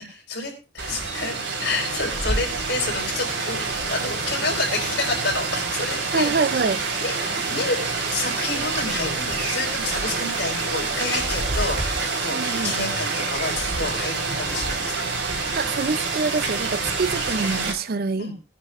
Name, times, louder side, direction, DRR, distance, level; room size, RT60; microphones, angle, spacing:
voice 1, 0.1-6.7 7.0-7.1 7.5-7.8 8.1-15.1 17.5-17.7 18.2-18.3, left 3 dB, 65° left, 4.8 m, -29 dB
Rain, 0.8-17.7, right 3 dB, 70° right, 4.1 m, -27 dB
voice 2, 6.1-6.8 12.3-12.7 15.5-18.3, right 4 dB, 50° right, 0.5 m, -25 dB
20.0 x 10.0 x 2.5 m
head